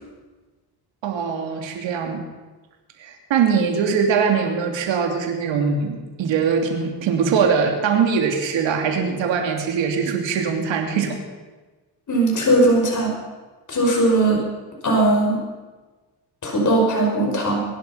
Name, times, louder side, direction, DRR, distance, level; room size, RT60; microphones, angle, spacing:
voice 1, 1.0-2.3 3.0-11.2, right 6 dB, 85° right, 3 dB, 2.9 m, -22 dB
voice 2, 12.1-13.1 13.7-14.4 14.8-15.4 16.4-17.6, right 1 dB, 40° left, 0 dB, 5.4 m, -18 dB
22.5 x 11.0 x 5.8 m, 1.3 s
cardioid pair, 90°, 44 cm